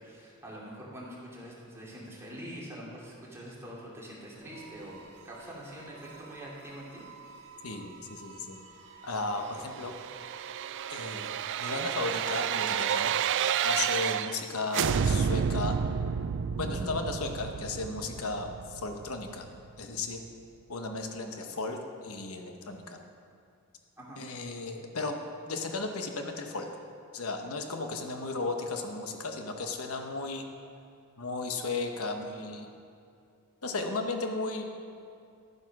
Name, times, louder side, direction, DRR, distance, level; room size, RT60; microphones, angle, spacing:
voice 1, 0.0-5.0 5.2-7.4 24.0-24.2, equal, 10° right, -5 dB, 2.8 m, -44 dB
sound 1, 4.3-14.2, right 5 dB, 85° right, 1.5 m, -52 dB
voice 2, 7.6-8.6 9.0-9.9 10.9-13.2 13.6-15.8 16.6-19.5 19.8-20.2 20.7-23.0 24.2-25.2 25.4-26.7 27.1-30.4 31.2-32.7 33.6-34.7, left 3 dB, 75° left, 4 dB, 1.0 m, -35 dB
sound 2, 9.7-14.5 14.7-19.6 20.0-20.1, right 7 dB, 55° right, 0.3 m, -31 dB
12.5 x 9.4 x 6.1 m, 2.4 s
head